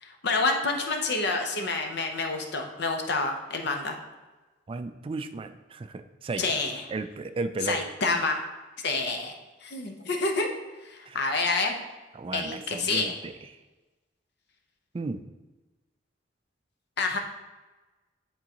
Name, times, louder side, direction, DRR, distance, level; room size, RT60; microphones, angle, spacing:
voice 1, 0.0-4.0 6.4-6.8 7.6-8.4 8.8-9.3 9.6-10.5 10.8-11.8 12.3-13.1 17.0-17.2, left 3 dB, 60° left, 3 dB, 0.8 m, -28 dB
voice 2, 4.7-6.4 6.9-7.8 11.1-11.3 12.1-13.3 14.9-15.2, right 3 dB, 30° right, 10 dB, 0.3 m, -34 dB
10.5 x 3.7 x 2.9 m, 1.2 s
head